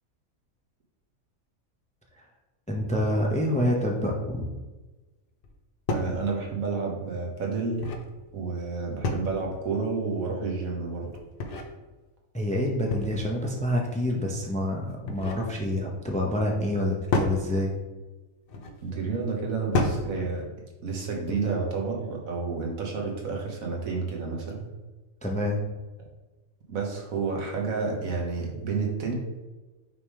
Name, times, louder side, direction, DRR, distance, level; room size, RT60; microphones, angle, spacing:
voice 1, 2.7-4.5 12.3-17.7 25.2-25.6, left 1 dB, 10° left, 0 dB, 0.6 m, -27 dB
sound 1, 5.4-5.5 5.9-6.2 7.5-8.1 9.0-9.5 11.1-11.7 12.9-13.4 14.8-15.5 17.1-17.4 18.5-18.8 19.7-20.1, left 2 dB, 50° left, 0.8 m, -29 dB
voice 2, 5.9-7.8 8.3-11.1 18.8-20.5 20.8-24.7 26.7-29.1, right 4 dB, 90° right, 0 dB, 1.6 m, -30 dB
5.8 x 3.5 x 4.8 m, 1.2 s
omnidirectional pair, 1.4 m